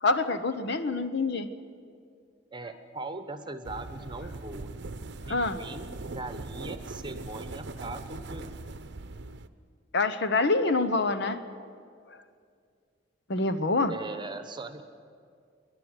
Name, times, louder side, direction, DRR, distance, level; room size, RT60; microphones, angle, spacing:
voice 1, 0.0-1.5 5.2-5.6 9.9-11.4 13.3-13.9, left 3 dB, 65° left, 10 dB, 1.0 m, -26 dB
voice 2, 2.5-4.7 5.3-8.6 13.8-14.8, right 2 dB, 25° right, 9 dB, 1.1 m, -40 dB
sound 1, 3.6-9.5, right 2 dB, 60° right, 0.8 m, -40 dB
28.0 x 11.0 x 9.7 m, 2.2 s
head